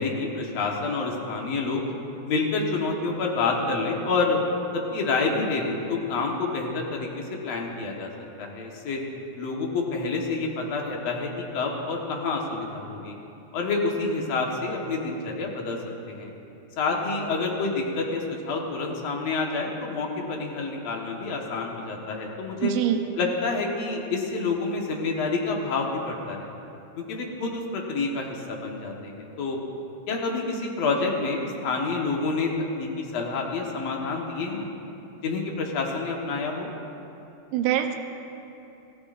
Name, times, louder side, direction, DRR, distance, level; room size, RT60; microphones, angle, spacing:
voice 1, 0.0-1.8 2.2-4.4 4.7-8.1 8.4-9.0 9.4-13.1 13.5-15.8 16.1-16.3 16.8-22.7 23.2-26.5 27.0-29.6 30.1-34.7 35.2-36.7, left 3 dB, 60° left, -1 dB, 1.8 m, -28 dB
voice 2, 22.6-23.0 37.5-38.0, right 11 dB, 85° right, 5 dB, 3.1 m, -23 dB
24.0 x 16.5 x 2.6 m, 2.9 s
omnidirectional pair, 4.9 m